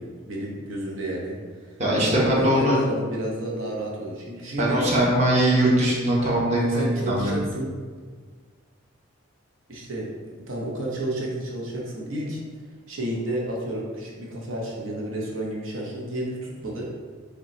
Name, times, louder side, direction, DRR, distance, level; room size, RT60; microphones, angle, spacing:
voice 1, 0.0-1.4 1.6-4.8 6.6-7.7 9.7-12.4 12.9-16.9, right 1 dB, 75° right, -3 dB, 0.8 m, -31 dB
voice 2, 1.8-2.8 4.6-7.3, right 1 dB, 35° right, -5 dB, 0.8 m, -21 dB
5.1 x 2.3 x 4.1 m, 1.5 s
head